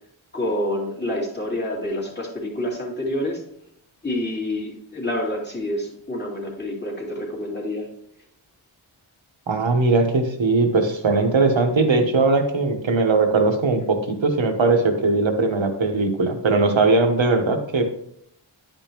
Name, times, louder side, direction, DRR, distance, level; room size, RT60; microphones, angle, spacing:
voice 1, 0.3-3.4 4.0-7.9, left 1 dB, 20° left, -4 dB, 2.7 m, -27 dB
voice 2, 9.5-17.8, right 3 dB, 70° right, 4 dB, 1.3 m, -20 dB
11.0 x 5.3 x 3.0 m, 0.71 s
wide cardioid pair, 80°, 47 cm